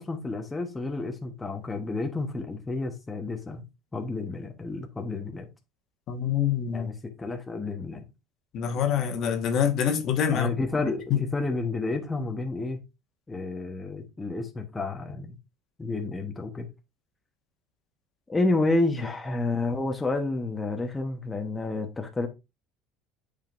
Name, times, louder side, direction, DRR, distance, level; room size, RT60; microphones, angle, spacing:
voice 1, 0.0-3.6 3.9-5.5 6.7-8.1 10.3-12.8 13.3-15.4 15.8-16.7 18.3-22.3, left 2 dB, 15° left, 1.1 m, -30 dB
voice 2, 6.1-6.9 8.5-10.5 11.1-11.3, left 8 dB, 50° left, 1.5 m, -25 dB
8.9 x 5.1 x 2.6 m
supercardioid pair, 115°, 0 cm